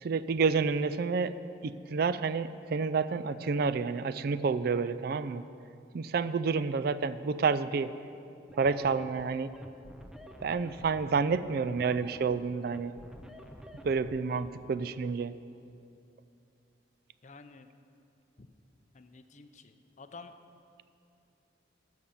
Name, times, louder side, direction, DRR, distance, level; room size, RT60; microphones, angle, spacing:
voice 1, 0.0-1.4 1.6-5.5 5.9-7.9 8.6-9.5 10.4-12.9 13.8-15.3, right 5 dB, 55° right, 13 dB, 0.4 m, -29 dB
sound 1, 8.5-14.5, equal, 5° right, 0.5 m, -49 dB
voice 2, 17.2-17.7 18.4-18.5 18.9-20.3, left 4 dB, 40° left, 9 dB, 0.6 m, -50 dB
13.0 x 6.5 x 7.0 m, 2.5 s
head